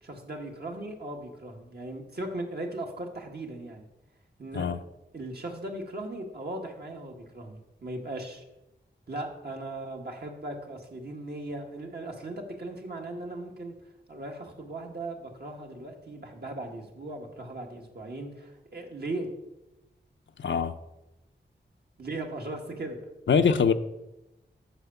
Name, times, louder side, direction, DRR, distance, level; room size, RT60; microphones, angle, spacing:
voice 1, 0.0-3.9 4.4-4.7 5.1-8.4 9.1-13.7 14.1-19.3 22.0-23.0, right 2 dB, 60° right, 1.7 m, -38 dB
voice 2, 20.4-20.8 23.3-23.7, left 6 dB, 80° left, 0.6 m, -23 dB
8.0 x 5.7 x 6.9 m
wide cardioid pair, 80°, 19 cm